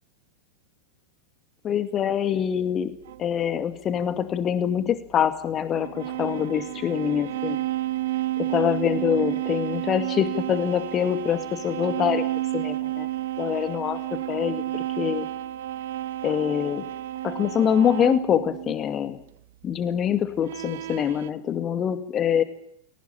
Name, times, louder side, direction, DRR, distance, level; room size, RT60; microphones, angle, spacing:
voice 1, 1.6-2.9 3.2-7.6 8.4-12.2 12.5-13.1 13.4-14.0 14.3-15.2 16.2-16.9 17.2-19.2 19.6-22.4, left 9 dB, 25° left, 11 dB, 2.3 m, -25 dB
sound 1, 3.1-3.3 5.7-18.8 20.4-21.3, right 14 dB, 55° right, 0.9 m, -31 dB
22.0 x 19.0 x 9.1 m, 0.69 s
figure-of-eight pair, 90°, 0 cm